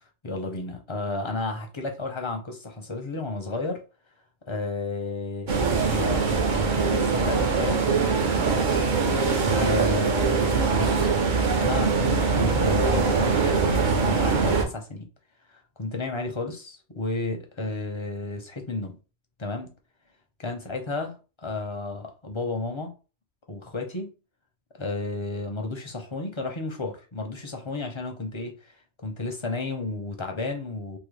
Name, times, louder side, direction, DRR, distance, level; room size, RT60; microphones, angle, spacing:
voice 1, 0.2-3.8 4.5-5.6 5.8-6.3 6.9-7.8 8.5-9.3 9.5-11.1 11.6-12.0 12.3-15.1 15.5-19.0 19.4-19.7 20.4-21.1 21.4-22.9 23.5-24.1 24.7-28.7 29.0-31.0, left 3 dB, 35° left, 0.6 m, -32 dB
sound 1, 5.5-14.6, right 4 dB, 50° right, 0.7 m, -22 dB
3.8 x 2.1 x 3.2 m
omnidirectional pair, 1.2 m